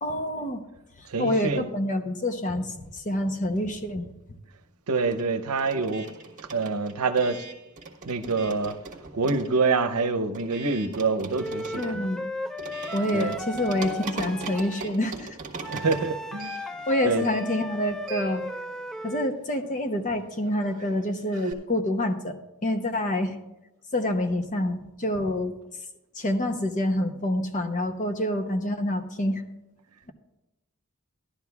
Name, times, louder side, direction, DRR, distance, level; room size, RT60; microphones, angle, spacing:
voice 1, 0.0-0.6 1.2-4.1 11.7-12.2 12.9-15.4 16.9-18.4 19.0-23.4 23.9-25.5 26.1-29.4, left 1 dB, 35° left, 6 dB, 0.8 m, -27 dB
voice 2, 1.1-1.7 4.9-6.0 6.5-7.4 8.1-8.7 9.1-12.1 13.1-13.3 15.7-16.6 17.0-17.2, right 4 dB, 80° right, 9 dB, 0.7 m, -26 dB
sound 1, 2.7-4.0 4.2-21.5, right 4 dB, 35° right, 1.2 m, -41 dB
Wind instrument woodwind instrument, 11.3-14.8 15.6-19.4, equal, ahead, 0.4 m, -36 dB
16.0 x 11.5 x 2.4 m, 0.95 s
head